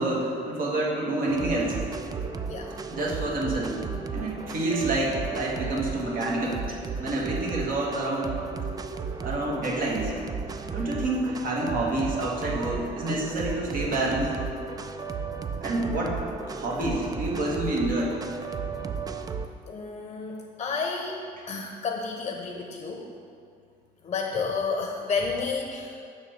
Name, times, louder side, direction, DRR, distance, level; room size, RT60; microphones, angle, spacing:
voice 1, 0.0-1.8 2.9-3.8 4.1-8.4 9.2-10.1 10.7-14.4 15.6-16.2 16.5-18.2 21.4-21.5, right 2 dB, 55° right, -2 dB, 1.6 m, -28 dB
sound 1, 1.3-19.5, right 5 dB, 20° right, 0.3 m, -34 dB
voice 2, 19.7-21.2 21.5-23.0 24.0-25.9, left 4 dB, 35° left, 2 dB, 0.7 m, -31 dB
6.5 x 4.1 x 6.4 m, 2.4 s
cardioid pair, 110°, 17 cm